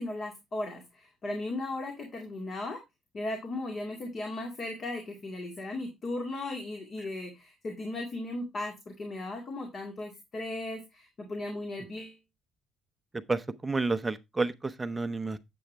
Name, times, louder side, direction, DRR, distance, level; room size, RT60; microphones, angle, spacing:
voice 1, 0.0-2.8 3.1-12.2, left 2 dB, 40° left, 2.2 m, -36 dB
voice 2, 13.1-15.4, right 3 dB, 15° right, 0.7 m, -30 dB
8.4 x 7.8 x 3.3 m
cardioid pair, 130°, 0 cm